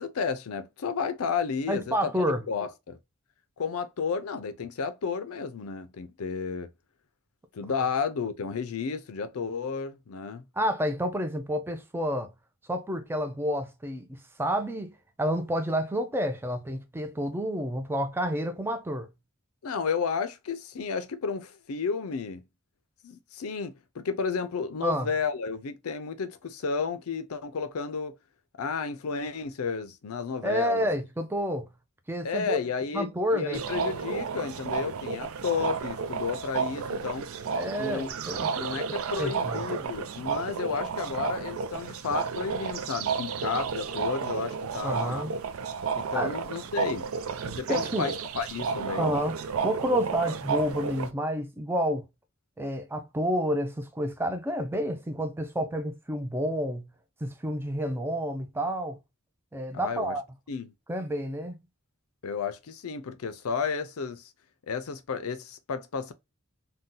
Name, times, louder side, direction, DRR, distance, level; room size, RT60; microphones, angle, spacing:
voice 1, 0.0-2.1 2.5-3.0 3.6-6.7 7.5-10.5 19.6-22.4 23.0-28.1 28.6-30.9 32.2-37.3 37.8-38.1 38.5-45.3 45.9-47.1 47.4-49.2 59.7-60.1 60.5-60.7 62.2-64.3 64.7-66.1, left 5 dB, 80° left, 0.5 m, -32 dB
voice 2, 1.7-2.4 10.6-12.3 12.7-19.1 24.8-25.1 30.4-31.7 32.1-32.6 32.9-33.7 37.5-38.5 39.2-39.6 44.8-45.3 46.1-46.4 47.7-48.1 49.0-49.4 49.6-52.1 52.6-56.9 57.2-59.0 59.5-60.2 60.9-61.6, equal, 10° right, 0.4 m, -29 dB
sound 1, 33.5-51.1, right 5 dB, 70° right, 0.4 m, -32 dB
2.7 x 2.2 x 3.6 m
head